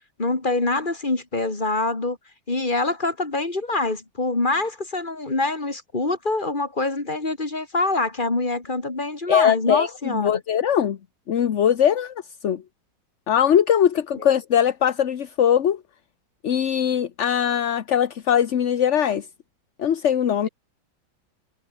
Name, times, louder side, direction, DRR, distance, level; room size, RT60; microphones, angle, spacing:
voice 1, 0.2-2.2 2.5-10.3 14.1-14.3, left 2 dB, 25° left, 3.2 m, -25 dB
voice 2, 9.3-11.0 11.3-12.1 12.4-12.6 13.3-15.8 16.4-19.3 19.8-20.5, left 9 dB, 50° left, 1.1 m, -21 dB
omnidirectional pair, 1.9 m